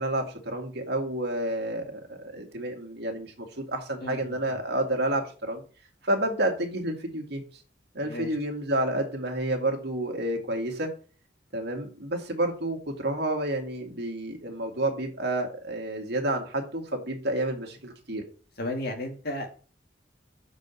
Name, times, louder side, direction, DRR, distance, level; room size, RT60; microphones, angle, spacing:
voice 1, 0.0-5.6 6.0-7.4 7.9-10.9 11.5-18.2, right 1 dB, 65° right, 3 dB, 2.2 m, -30 dB
voice 2, 4.0-4.6 8.0-8.3 18.6-19.6, left 1 dB, 60° left, 2 dB, 2.2 m, -34 dB
6.4 x 5.1 x 6.9 m, 0.38 s
head